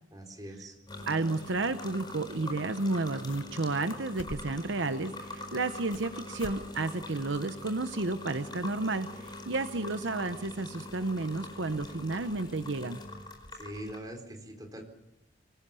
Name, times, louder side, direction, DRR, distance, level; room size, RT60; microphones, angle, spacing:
voice 1, 0.1-0.8 13.5-14.8, right 1 dB, 20° right, 4 dB, 4.1 m, -42 dB
kávovar výroba kávy, 0.9-14.0, left 2 dB, 25° left, 4.6 m, -43 dB
voice 2, 1.1-13.0, right 3 dB, 65° right, 10 dB, 0.9 m, -32 dB
sound 1, 2.4-2.5 2.8-3.6 3.9-4.7 5.2-6.1 6.4-6.6 7.0-7.1 7.6-7.7, left 2 dB, 75° left, 1.0 m, -46 dB
25.5 x 19.5 x 7.0 m, 0.87 s
head